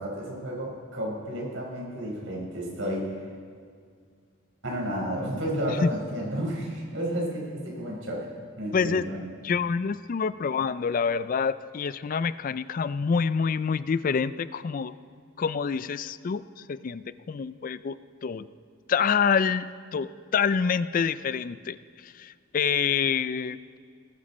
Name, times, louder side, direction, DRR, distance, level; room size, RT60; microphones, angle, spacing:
voice 1, 0.0-3.2 4.6-8.3 8.6-9.2, equal, 80° right, -2 dB, 4.7 m, -31 dB
voice 2, 8.7-9.0 9.4-14.9 15.4-16.4 16.7-18.0 18.2-18.5 18.9-21.8 22.0-23.6, left 6 dB, 45° left, 15 dB, 0.4 m, -27 dB
19.5 x 14.0 x 4.3 m, 2.1 s
head